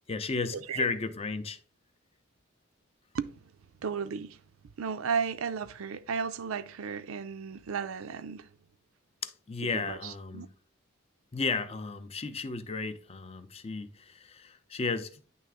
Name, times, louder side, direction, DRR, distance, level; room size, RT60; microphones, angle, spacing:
voice 1, 0.1-1.6 9.2-10.5 11.3-15.2, left 4 dB, 30° left, 0.5 m, -34 dB
voice 2, 3.1-3.5 3.8-4.4 4.8-8.5 9.6-10.5, right 6 dB, 90° right, 0.5 m, -34 dB
9.6 x 3.3 x 3.5 m
head